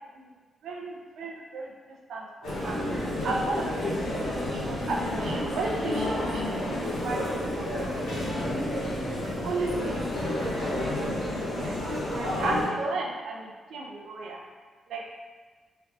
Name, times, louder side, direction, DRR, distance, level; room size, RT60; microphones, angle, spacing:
voice 1, 0.6-1.7 2.1-2.8 3.2-8.6 9.2-14.4 14.9-15.0, right 2 dB, 85° right, -1 dB, 0.4 m, -35 dB
sound 1, 2.4-12.7, left 1 dB, 90° left, 0.7 m, -30 dB
3.3 x 2.4 x 2.3 m, 1.4 s
cardioid pair, 85°, 0 cm